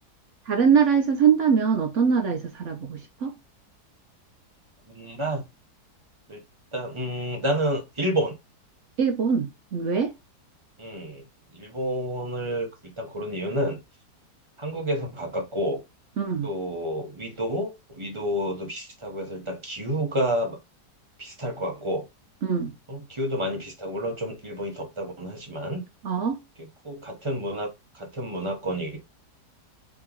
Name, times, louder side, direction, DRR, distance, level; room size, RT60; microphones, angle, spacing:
voice 1, 0.5-3.4 9.0-10.1 16.2-16.5 22.4-22.7 26.0-26.4, right 6 dB, 60° right, 0.8 m, -23 dB
voice 2, 4.9-5.5 6.3-6.4 6.7-8.4 10.8-11.3 11.5-13.8 14.6-15.8 16.4-20.6 21.2-22.1 22.9-25.8 26.6-27.7 27.9-29.0, equal, 25° right, 0.8 m, -30 dB
3.5 x 2.9 x 3.6 m
omnidirectional pair, 1.8 m